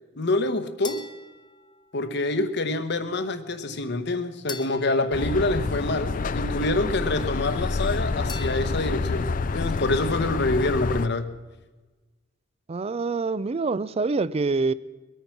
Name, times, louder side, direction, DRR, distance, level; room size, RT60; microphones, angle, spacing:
voice 1, 0.2-1.1 1.9-11.4, left 2 dB, 60° left, 1.0 m, -26 dB
sound 1, 0.8-2.3 4.5-6.3 8.3-9.4, left 4 dB, 20° left, 0.9 m, -43 dB
sound 2, 5.1-11.1, left 4 dB, 45° left, 0.5 m, -28 dB
voice 2, 12.7-14.7, right 3 dB, 30° right, 0.4 m, -25 dB
21.5 x 9.2 x 5.9 m
head